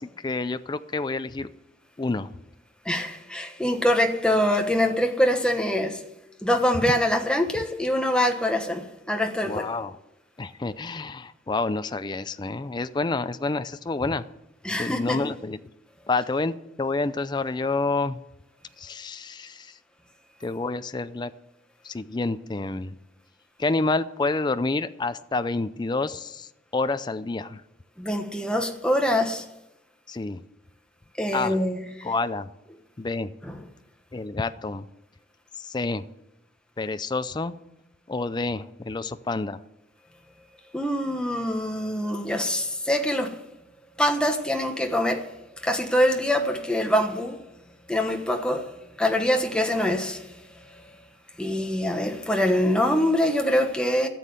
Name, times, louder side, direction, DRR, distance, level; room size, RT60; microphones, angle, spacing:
voice 1, 0.0-1.5 2.0-2.3 9.5-10.0 10.4-14.2 14.8-15.6 16.1-18.2 18.8-19.8 20.4-21.3 21.8-23.0 23.6-27.6 30.1-30.4 31.3-31.6 32.0-32.5 33.0-33.3 34.1-34.8 35.6-36.1 36.8-37.5 38.1-39.6, left 3 dB, 25° left, 0.4 m, -28 dB
voice 2, 2.8-6.0 6.4-9.6 14.6-15.2 28.0-29.4 31.2-31.8 33.4-33.6 40.7-43.4 44.0-45.3 45.6-47.4 47.9-48.7 49.0-50.3 51.4-54.1, left 1 dB, 5° left, 1.2 m, -24 dB
13.5 x 7.5 x 7.9 m
head